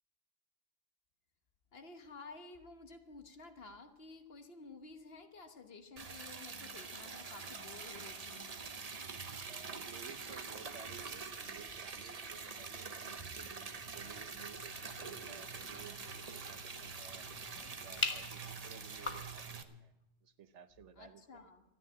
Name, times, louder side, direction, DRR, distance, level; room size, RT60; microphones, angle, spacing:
voice 1, 1.7-8.5 21.0-21.6, left 3 dB, 60° left, 6 dB, 1.4 m, -53 dB
Liquid, 6.0-19.6, right 4 dB, 35° right, 0.9 m, -45 dB
voice 2, 9.4-17.3 17.8-19.9 20.2-21.5, right 8 dB, 85° right, 11 dB, 1.2 m, -55 dB
sound 1, 13.9-19.3, left 3 dB, 30° left, 0.9 m, -44 dB
13.5 x 9.5 x 8.6 m, 0.99 s
omnidirectional pair, 1.2 m